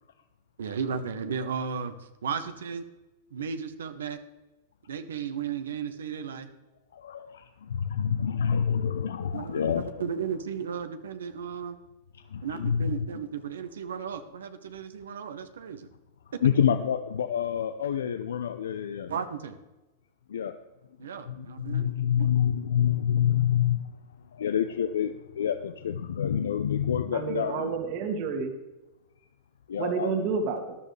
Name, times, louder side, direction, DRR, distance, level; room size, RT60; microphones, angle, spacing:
voice 1, 0.6-2.8 3.3-4.2 4.9-6.5 9.3-11.8 12.4-15.9 16.3-16.4 19.1-19.6 21.0-21.9 22.2-22.3, right 6 dB, 85° right, 9 dB, 1.0 m, -34 dB
voice 2, 6.9-10.0 12.3-13.1 16.4-19.1 20.3-20.5 21.3-23.9 24.3-27.8 29.7-30.3, left 8 dB, 80° left, 9 dB, 0.6 m, -27 dB
voice 3, 27.1-28.5 29.8-30.8, right 5 dB, 55° right, 4 dB, 2.1 m, -30 dB
14.0 x 11.0 x 3.3 m, 1.1 s
hypercardioid pair, 110°, 0 cm